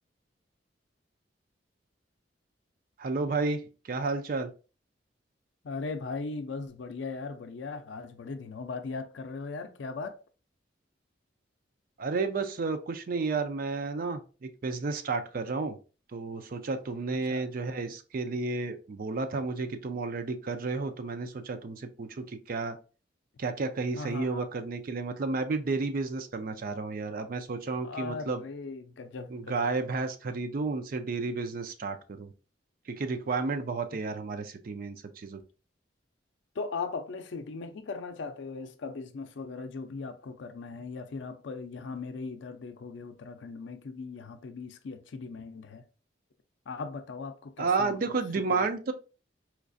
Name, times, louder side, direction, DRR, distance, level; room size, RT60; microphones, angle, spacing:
voice 1, 3.0-3.6 3.9-4.5 12.0-15.8 16.1-22.8 23.4-28.4 29.3-32.3 32.9-35.4 47.6-48.9, right 4 dB, 50° right, 0.4 m, -32 dB
voice 2, 5.6-10.2 17.1-17.5 24.0-24.5 27.8-29.7 36.6-45.9 46.7-48.7, left 4 dB, 80° left, 0.4 m, -39 dB
4.4 x 2.4 x 2.5 m
head